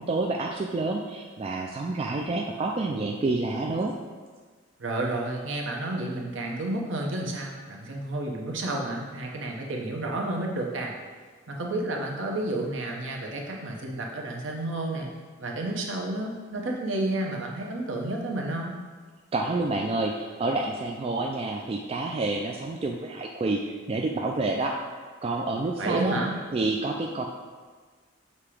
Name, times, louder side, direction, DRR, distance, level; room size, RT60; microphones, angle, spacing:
voice 1, 0.0-3.9 19.3-24.8 25.2-26.2 26.5-27.3, right 2 dB, 30° right, 1 dB, 0.3 m, -28 dB
voice 2, 4.8-10.9 11.5-15.1 15.4-18.8 25.8-26.4, right 2 dB, 65° right, 0 dB, 0.9 m, -31 dB
6.7 x 2.9 x 4.9 m, 1.4 s
head